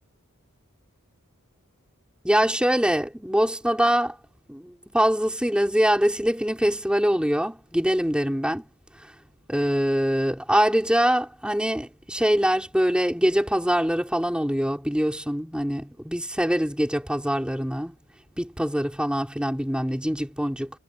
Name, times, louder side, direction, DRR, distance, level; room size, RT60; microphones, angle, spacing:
voice 1, 2.2-4.2 4.5-8.6 9.5-17.9 18.4-20.7, equal, 5° right, 5.1 m, -23 dB
head